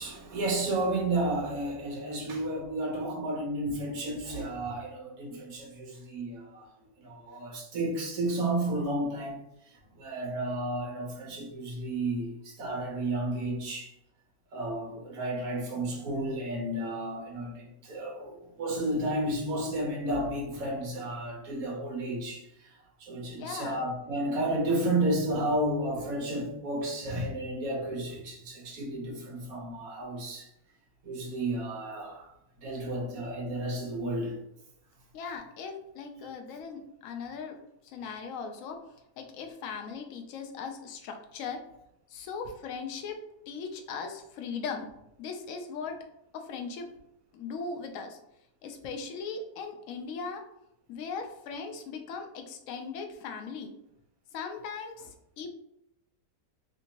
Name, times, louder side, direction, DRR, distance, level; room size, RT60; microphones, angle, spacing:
voice 1, 0.0-6.7 7.0-9.4 9.9-13.9 14.5-22.7 23.0-30.5 31.0-32.3 32.6-34.3, right 1 dB, 65° right, 1.3 m, -32 dB
voice 2, 23.3-23.8 35.1-38.8 39.2-41.6 42.1-44.9 45.2-46.0 46.3-46.9 47.3-48.2 48.6-50.5 50.9-53.7 54.3-55.5, left 5 dB, 70° left, 0.8 m, -39 dB
3.4 x 2.7 x 2.8 m
omnidirectional pair, 1.8 m